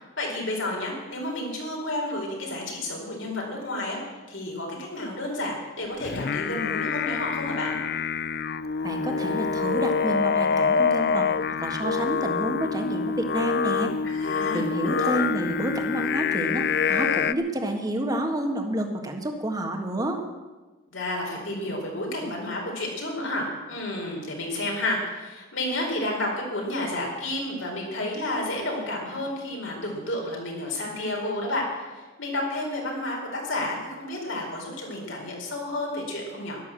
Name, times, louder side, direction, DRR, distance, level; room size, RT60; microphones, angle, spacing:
voice 1, 0.0-4.0 4.3-7.8 14.0-15.1 20.9-36.6, left 1 dB, 70° left, -1 dB, 4.5 m, -31 dB
Singing, 6.0-17.3, left 6 dB, 50° left, 0.4 m, -26 dB
voice 2, 8.8-11.3 11.6-13.9 14.5-20.2, right 1 dB, 20° right, 3 dB, 1.6 m, -29 dB
12.5 x 12.0 x 7.6 m, 1.2 s
head